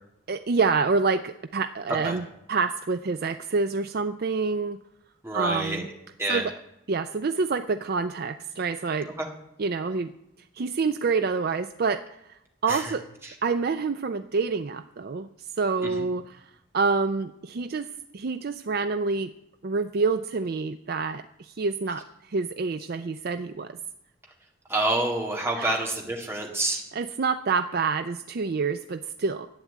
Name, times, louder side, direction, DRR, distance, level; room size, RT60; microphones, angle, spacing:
voice 1, 0.3-4.8 5.3-5.9 6.3-6.5 6.9-9.1 9.6-10.1 10.6-12.0 12.3-13.0 13.4-15.3 15.6-16.5 16.7-17.9 18.1-19.3 19.6-23.8 25.6-25.8 26.9-29.5, right 4 dB, 50° right, 9 dB, 0.4 m, -27 dB
voice 2, 5.2-5.8 6.2-6.5 9.2-9.3 12.7-12.9 13.2-13.3 15.8-16.1 24.7-26.8, right 2 dB, 10° right, 0 dB, 2.0 m, -28 dB
11.5 x 8.8 x 8.4 m, 0.84 s
head